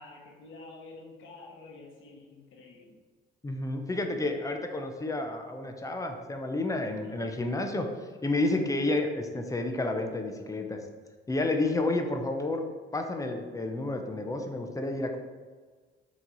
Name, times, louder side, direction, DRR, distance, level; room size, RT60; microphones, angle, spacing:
voice 1, 0.0-3.0 3.9-4.0 6.8-7.2, left 3 dB, 75° left, -1 dB, 0.8 m, -49 dB
voice 2, 3.4-10.8 11.3-12.6 12.9-15.2, left 2 dB, 15° left, 4 dB, 0.6 m, -30 dB
4.4 x 3.0 x 3.9 m, 1.4 s
cardioid pair, 90°, 20 cm